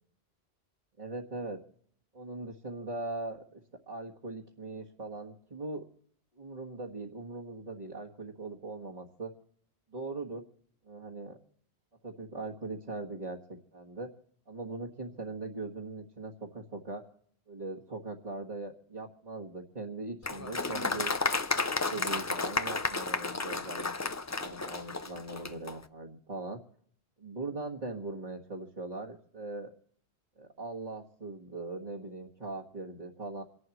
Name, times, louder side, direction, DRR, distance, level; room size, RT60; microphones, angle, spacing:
voice 1, 1.0-1.6 2.1-3.6 3.9-5.8 6.4-9.3 9.9-10.4 10.8-11.4 12.0-13.4 13.7-14.1 14.5-17.0 17.5-21.1 21.9-26.6 27.2-29.7 30.4-33.4, right 2 dB, 40° right, -5 dB, 1.6 m, -40 dB
Applause, 20.2-25.8, left 3 dB, 25° left, 0.3 m, -32 dB
27.5 x 11.0 x 3.0 m, 0.63 s
omnidirectional pair, 1.1 m